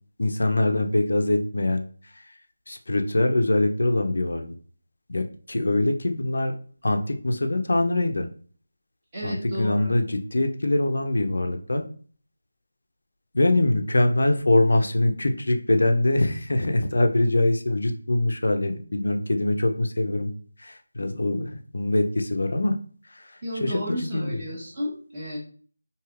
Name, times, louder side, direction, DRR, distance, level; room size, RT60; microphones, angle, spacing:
voice 1, 0.2-1.8 2.7-4.5 5.1-6.5 6.8-8.3 9.2-11.8 13.3-20.3 20.6-22.7 23.1-23.2 23.6-24.4, left 2 dB, 60° left, 6 dB, 0.4 m, -23 dB
voice 2, 9.1-10.0 23.4-25.4, equal, 15° right, -7 dB, 0.9 m, -32 dB
3.1 x 2.7 x 2.4 m, 0.44 s
figure-of-eight pair, 175°, 0 cm